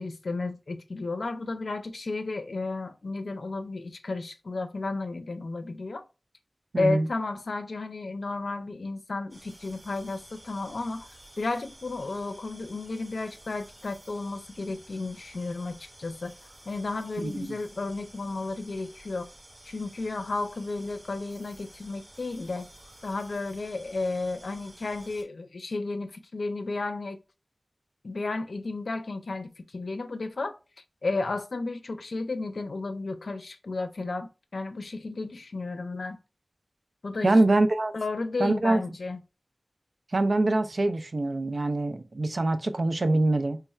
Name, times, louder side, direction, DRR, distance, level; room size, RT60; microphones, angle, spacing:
voice 1, 0.0-6.0 6.8-11.1 11.4-16.3 16.7-19.3 19.7-22.7 23.0-27.2 28.0-30.5 31.0-36.2 37.0-37.3 37.9-39.2, left 3 dB, 90° left, 0.5 m, -33 dB
voice 2, 6.7-7.1 17.2-17.6 37.2-37.9 38.4-38.8 40.1-43.6, right 2 dB, 70° right, 0.4 m, -24 dB
sound 1, 9.3-25.2, right 1 dB, 50° right, 1.7 m, -52 dB
3.3 x 2.3 x 4.1 m
wide cardioid pair, 70°, 0 cm